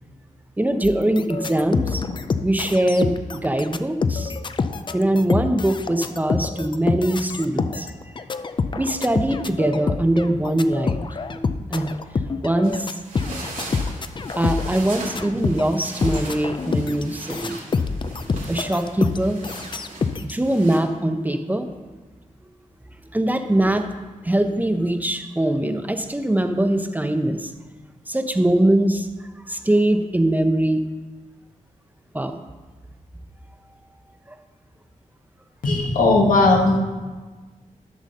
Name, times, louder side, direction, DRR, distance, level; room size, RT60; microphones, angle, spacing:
voice 1, 0.6-2.0 2.4-4.3 4.9-7.9 8.8-11.0 11.3-11.9 12.4-13.0 14.3-17.6 18.5-19.4 20.2-21.7 23.1-23.9 24.2-27.5 28.1-29.1 29.5-30.8 32.1-32.4, right 1 dB, 10° right, 7 dB, 0.6 m, -22 dB
sound 1, 0.8-15.8 16.0-20.3, left 4 dB, 35° left, 0.4 m, -27 dB
sound 2, 12.6-20.8, right 2 dB, 85° right, 2.4 m, -39 dB
voice 2, 35.6-36.8, left 2 dB, 85° left, 1 dB, 1.5 m, -17 dB
11.5 x 4.0 x 6.5 m, 1.3 s
wide cardioid pair, 105°, 14 cm